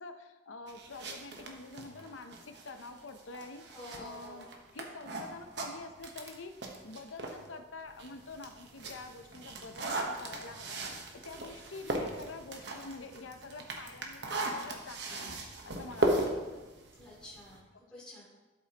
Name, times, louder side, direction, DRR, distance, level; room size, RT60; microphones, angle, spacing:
voice 1, 0.0-10.8 11.2-16.5 17.7-17.8, left 3 dB, 85° left, 8 dB, 0.7 m, -47 dB
sound 1, 0.7-7.5 7.9-17.6, right 2 dB, 60° right, 1.1 m, -38 dB
voice 2, 3.7-4.5 17.0-18.3, left 1 dB, 5° left, -9 dB, 2.9 m, -49 dB
12.0 x 7.5 x 2.9 m, 1.2 s
head